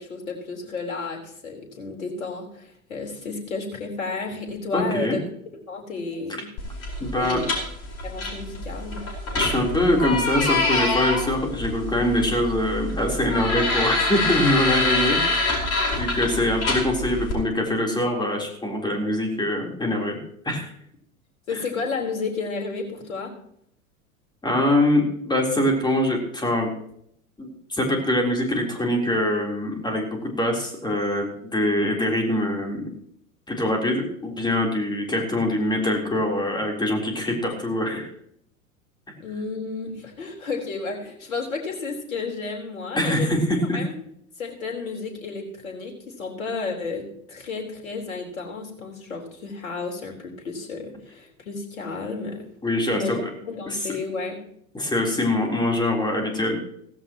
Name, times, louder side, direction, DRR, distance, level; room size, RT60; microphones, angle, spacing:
voice 1, 0.0-5.2 5.7-6.5 7.2-7.5 8.0-9.0 16.3-16.4 21.5-23.3 39.2-43.4 43.7-43.9 44.4-52.4 52.9-53.2 53.5-54.4, left 4 dB, 70° left, 1 dB, 4.2 m, -32 dB
voice 2, 4.7-5.2 7.0-7.4 9.4-20.2 20.5-20.7 24.4-26.7 27.4-32.9 33.5-38.1 43.0-43.8 52.6-53.2 53.7-53.8 54.7-56.6, left 1 dB, 10° left, 0 dB, 3.8 m, -24 dB
sound 1, 6.6-17.3, left 2 dB, 35° left, 5.0 m, -26 dB
16.5 x 15.5 x 3.1 m, 0.69 s
figure-of-eight pair, 85°, 43 cm